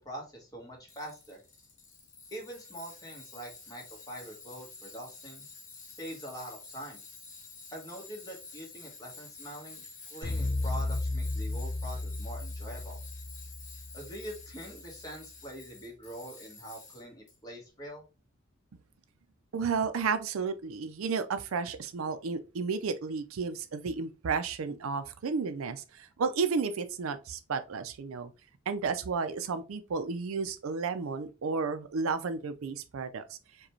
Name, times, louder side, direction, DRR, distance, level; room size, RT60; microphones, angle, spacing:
voice 1, 0.0-1.4 2.3-5.5 5.9-7.0 7.7-9.8 10.1-13.0 13.9-18.1, equal, 20° left, 1.2 m, -44 dB
Tools, 0.9-17.3, left 4 dB, 40° left, 1.0 m, -50 dB
sound 1, 10.2-14.6, left 2 dB, 5° right, 1.8 m, -34 dB
voice 2, 19.5-28.3 28.7-33.2, right 5 dB, 90° right, 0.5 m, -32 dB
4.8 x 2.3 x 3.0 m
head